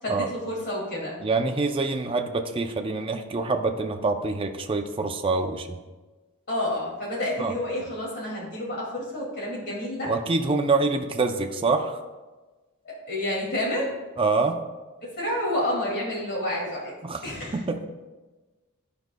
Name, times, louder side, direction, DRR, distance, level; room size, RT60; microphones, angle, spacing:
voice 1, 0.0-1.2 6.5-10.1 12.8-13.9 15.0-16.9 17.2-17.6, left 1 dB, 50° left, -4 dB, 2.3 m, -29 dB
voice 2, 1.2-5.8 7.4-7.5 10.1-12.0 14.2-14.6 17.0-17.2 17.5-17.9, right 3 dB, 25° right, 5 dB, 0.4 m, -25 dB
13.0 x 4.6 x 2.2 m, 1.2 s
head